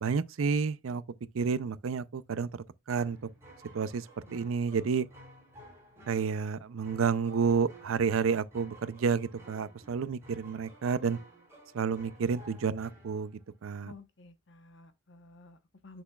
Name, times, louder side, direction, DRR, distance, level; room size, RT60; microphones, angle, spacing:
voice 1, 0.0-1.0 1.3-2.5 2.9-3.2 3.7-4.1 4.3-5.1 6.1-11.2 11.7-13.3 13.6-13.9, right 5 dB, 80° right, 0.5 m, -30 dB
sound 1, 3.0-13.6, right 1 dB, 15° right, 3.7 m, -54 dB
voice 2, 13.8-16.0, left 2 dB, 65° left, 1.0 m, -52 dB
8.0 x 6.1 x 2.3 m
head